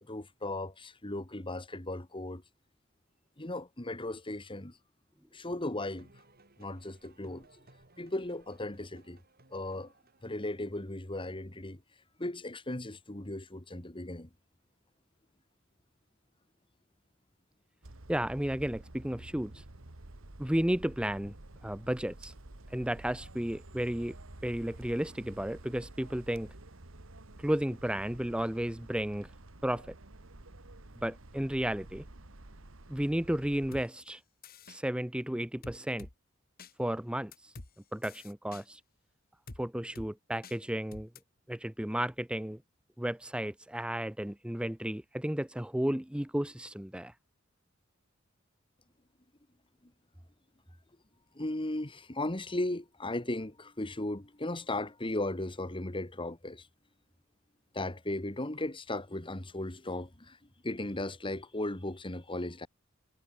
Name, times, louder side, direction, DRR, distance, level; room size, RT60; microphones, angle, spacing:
voice 1, 0.0-2.4 3.4-4.8 5.3-6.1 6.6-7.5 8.0-9.2 9.5-9.9 10.2-11.8 12.2-14.3 51.3-56.7 57.7-60.4 60.6-62.7, left 1 dB, 25° left, 2.0 m, -36 dB
sound 1, 5.8-11.0, right 2 dB, 50° right, 6.3 m, -63 dB
sound 2, 17.8-33.8, right 1 dB, 75° right, 2.0 m, -50 dB
voice 2, 18.1-19.6 20.4-21.3 21.6-22.3 22.7-24.1 24.4-26.5 27.4-29.3 29.6-29.9 31.0-32.0 32.9-34.2 34.7-36.1 36.8-37.5 37.9-38.8 39.6-41.1 41.5-42.6 43.0-47.1, right 1 dB, 5° right, 0.6 m, -33 dB
sound 3, 33.7-33.9 34.4-34.8 35.6-36.1 36.6-36.7 37.3-37.7 38.0-38.6 39.5-39.6 40.0-40.1 40.4-40.6 40.9-41.2, left 2 dB, 45° left, 1.6 m, -47 dB
head